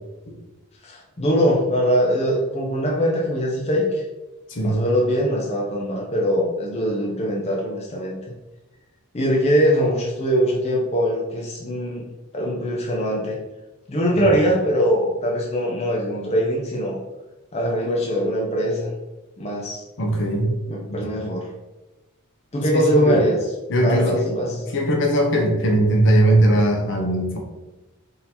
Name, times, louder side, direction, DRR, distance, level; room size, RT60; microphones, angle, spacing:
voice 1, 0.8-4.0 4.6-8.2 9.1-12.0 12.3-13.4 13.9-17.0 17.5-18.9 19.4-19.8 20.7-21.5 22.5-23.4 23.8-24.6, equal, 30° left, -3 dB, 0.6 m, -22 dB
voice 2, 4.5-4.8 14.1-14.3 20.0-20.5 20.9-21.3 22.7-23.3 23.7-24.3 24.7-27.4, right 1 dB, 55° left, 1 dB, 0.9 m, -20 dB
4.0 x 2.8 x 4.1 m, 1.1 s
head